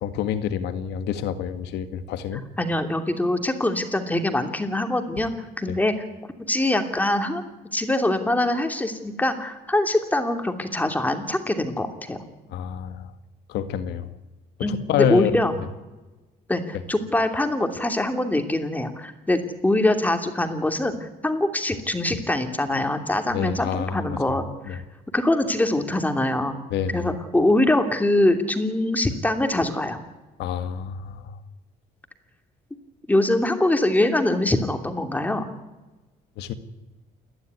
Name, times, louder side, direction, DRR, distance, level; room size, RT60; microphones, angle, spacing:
voice 1, 0.0-2.4 5.7-5.8 12.5-13.1 13.5-14.1 14.7-15.4 23.3-24.4 24.6-24.8 26.7-27.1 30.4-31.4 36.4-36.5, left 9 dB, 85° left, 10 dB, 1.8 m, -28 dB
voice 2, 2.6-5.3 5.6-5.9 6.5-7.4 7.7-12.2 14.6-15.5 16.5-24.8 25.1-26.5 26.9-30.0 33.1-35.5, left 1 dB, 10° left, 6 dB, 2.8 m, -23 dB
29.0 x 11.5 x 9.6 m, 1.1 s
cardioid pair, 110°, 17 cm